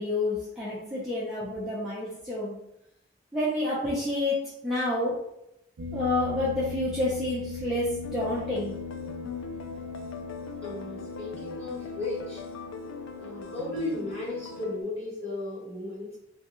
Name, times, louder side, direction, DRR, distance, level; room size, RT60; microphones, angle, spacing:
voice 1, 0.0-2.6 3.3-5.1 5.9-8.7, left 1 dB, ahead, -10 dB, 0.5 m, -29 dB
sound 1, 5.8-14.8, left 4 dB, 65° right, 0.5 m, -39 dB
sound 2, 8.0-14.8, left 4 dB, 90° left, 0.3 m, -42 dB
voice 2, 10.6-12.4 13.2-16.1, left 2 dB, 30° left, -8 dB, 1.3 m, -35 dB
2.2 x 2.2 x 2.9 m, 0.80 s
head